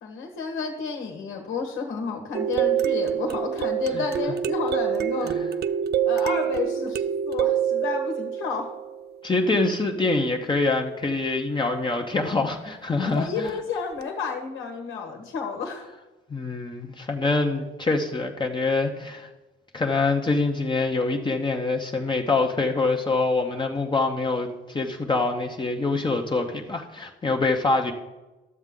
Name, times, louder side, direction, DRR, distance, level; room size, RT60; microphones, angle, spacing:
voice 1, 0.0-5.3 6.0-8.7 13.1-15.9, left 5 dB, 80° left, 3 dB, 1.4 m, -31 dB
sound 1, 2.3-9.2 13.5-13.6 14.0-14.1, right 9 dB, 55° right, 0.5 m, -26 dB
voice 2, 9.2-13.5 16.3-19.3 19.7-27.9, left 3 dB, 25° left, 2 dB, 0.8 m, -25 dB
12.0 x 7.2 x 3.7 m, 1.1 s
cardioid pair, 90°, 20 cm